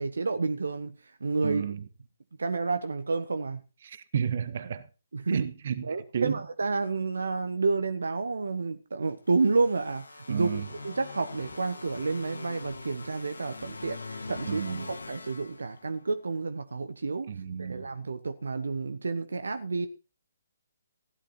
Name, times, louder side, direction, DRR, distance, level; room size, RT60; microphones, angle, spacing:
voice 1, 0.0-1.8 2.4-3.6 5.1-5.5 5.9-10.5 10.8-17.3 17.6-19.9, right 4 dB, 60° right, 1.0 m, -30 dB
voice 2, 1.4-1.8 3.8-4.8 5.3-6.4 10.3-10.7 14.5-14.9 17.3-17.9, right 7 dB, 45° right, 1.2 m, -32 dB
sound 1, 9.3-16.2, left 3 dB, 70° left, 2.5 m, -43 dB
16.0 x 11.0 x 4.2 m
figure-of-eight pair, 135°, 0 cm